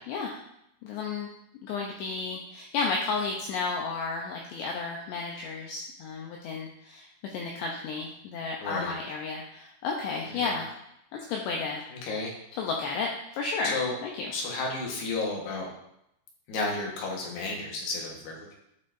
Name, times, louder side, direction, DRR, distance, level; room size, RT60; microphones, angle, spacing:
voice 1, 0.1-0.4 0.8-1.3 1.6-10.7 11.1-11.8 12.6-13.1 13.3-13.8 14.0-14.3, left 4 dB, 80° left, -1 dB, 2.5 m, -32 dB
voice 2, 8.6-8.9 10.3-10.5 11.9-12.3 13.6-14.0 14.3-15.7 16.5-18.5, left 3 dB, 65° left, -1 dB, 2.9 m, -32 dB
12.0 x 5.6 x 2.6 m, 0.77 s
omnidirectional pair, 5.9 m